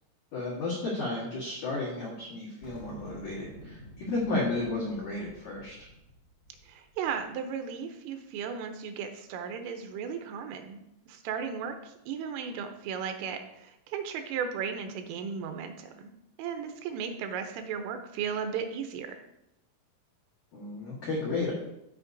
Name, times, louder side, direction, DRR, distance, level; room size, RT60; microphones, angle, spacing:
voice 1, 0.3-5.7 20.5-21.5, left 2 dB, 90° left, -5 dB, 1.7 m, -33 dB
sound 1, 2.6-7.3, left 1 dB, 65° left, 1.1 m, -50 dB
voice 2, 6.6-10.8 11.1-16.1 16.4-19.2, right 7 dB, 80° right, 6 dB, 3.0 m, -35 dB
14.5 x 5.1 x 2.6 m, 0.84 s
omnidirectional pair, 6.0 m